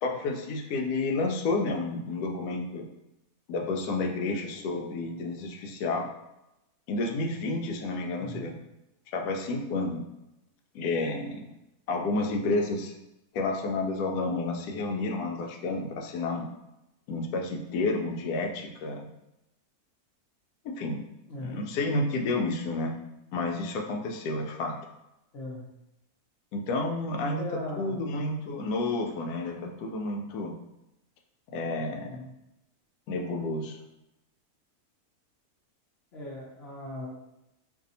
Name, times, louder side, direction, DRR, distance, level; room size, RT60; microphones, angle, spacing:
voice 1, 0.0-2.9 3.5-6.1 6.9-8.5 9.1-10.0 10.7-11.4 11.9-12.9 13.3-16.5 17.1-19.1 20.6-21.0 21.4-22.9 23.3-24.8 26.5-30.5 31.5-32.2 33.1-33.8, left 2 dB, 80° left, 2 dB, 1.1 m, -30 dB
voice 2, 8.2-8.5 21.3-21.7 25.3-25.6 27.4-28.4 32.1-32.2 36.1-37.1, left 1 dB, 50° left, -6 dB, 0.8 m, -39 dB
2.7 x 2.6 x 4.0 m, 0.91 s
omnidirectional pair, 1.6 m